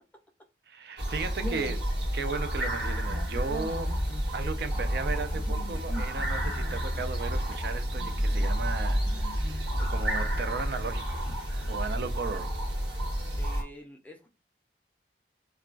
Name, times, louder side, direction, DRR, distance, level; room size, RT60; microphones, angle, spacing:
voice 1, 0.7-4.0 4.3-11.3 11.7-12.5, right 4 dB, 60° right, 0.4 m, -36 dB
sound 1, 1.0-13.6, equal, 80° right, 1.2 m, -30 dB
voice 2, 13.4-14.3, right 1 dB, 10° left, 0.5 m, -48 dB
2.3 x 2.2 x 3.7 m
head